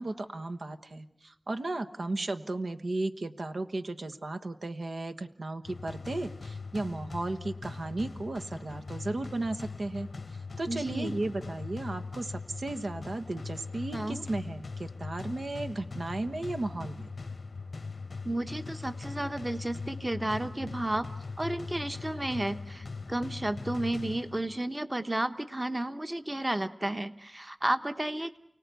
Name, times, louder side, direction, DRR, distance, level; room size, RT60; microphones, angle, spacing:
voice 1, 0.0-17.1, right 2 dB, 85° right, 8 dB, 1.2 m, -35 dB
sound 1, 5.6-24.6, left 4 dB, 90° left, 0.9 m, -41 dB
voice 2, 10.7-11.1 13.9-14.2 18.2-21.1 21.4-28.4, right 1 dB, 25° right, 10 dB, 1.0 m, -32 dB
29.5 x 18.0 x 8.2 m, 0.77 s
wide cardioid pair, 65°, 0 cm